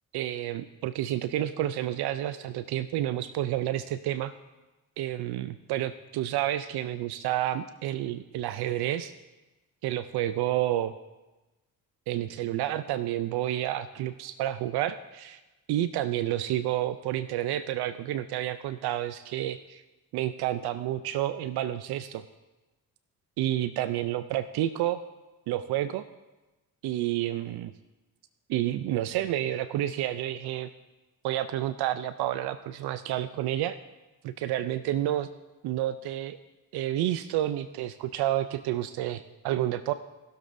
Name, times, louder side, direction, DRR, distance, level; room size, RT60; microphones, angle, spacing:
voice 1, 0.1-4.3 5.0-9.1 9.8-10.9 12.1-15.4 15.7-19.8 20.1-22.2 23.4-25.0 25.5-26.0 26.8-27.7 28.5-30.7 31.2-33.8 34.2-35.3 35.6-36.4 36.7-39.9, right 13 dB, 80° right, 13 dB, 0.5 m, -30 dB
19.5 x 7.0 x 2.6 m, 1.1 s
supercardioid pair, 70°, 38 cm